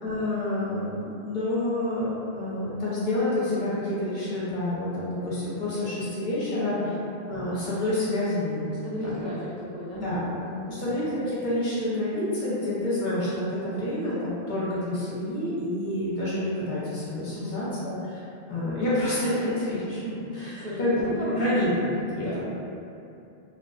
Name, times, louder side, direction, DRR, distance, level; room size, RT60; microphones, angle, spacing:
voice 1, 0.0-2.1 2.3-6.9 7.3-8.7 9.0-9.2 9.9-10.2 10.7-20.0 20.3-21.1 21.3-21.9 22.2-22.4, left 1 dB, 55° left, -9 dB, 0.7 m, -28 dB
voice 2, 6.5-7.1 8.7-10.1 10.4-10.8 17.3-17.8 20.0-21.7 22.1-22.4, equal, 55° right, -10 dB, 0.6 m, -35 dB
2.4 x 2.3 x 2.2 m, 2.7 s
omnidirectional pair, 1.1 m